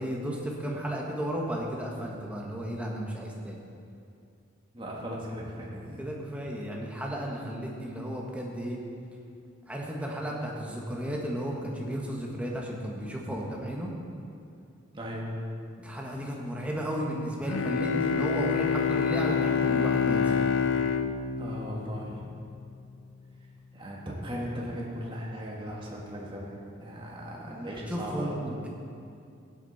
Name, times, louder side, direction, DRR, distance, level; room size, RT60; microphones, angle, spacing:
voice 1, 0.0-3.6 6.0-8.8 9.7-13.9 15.8-20.3 27.4-28.7, equal, 5° right, -2 dB, 1.5 m, -34 dB
voice 2, 4.7-6.1 14.9-15.3 21.4-22.2 23.7-28.5, equal, 25° right, -3 dB, 1.9 m, -37 dB
Bowed string instrument, 17.5-22.4, left 6 dB, 80° left, 0.5 m, -27 dB
16.0 x 8.3 x 4.2 m, 2.4 s
head